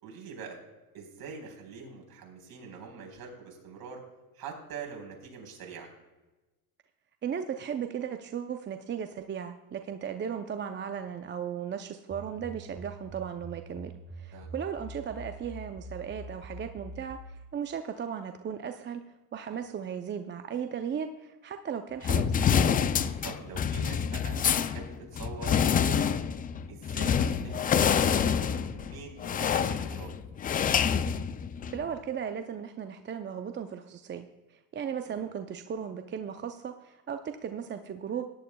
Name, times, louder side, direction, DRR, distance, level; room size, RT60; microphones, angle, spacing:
voice 1, 0.0-0.6 0.9-4.0 4.4-5.9 14.3-14.5 19.5-19.6 23.2-26.2 26.7-30.1 35.1-35.2, right 5 dB, 50° right, 1 dB, 4.3 m, -44 dB
voice 2, 7.2-19.0 19.3-22.4 31.7-38.2, right 8 dB, 25° right, 7 dB, 0.6 m, -36 dB
sound 1, 12.1-17.4, right 1 dB, 5° right, 1.1 m, -44 dB
sound 2, 22.0-31.8, left 7 dB, 20° left, 0.3 m, -27 dB
17.5 x 11.0 x 2.3 m, 1.1 s
supercardioid pair, 100°, 45 cm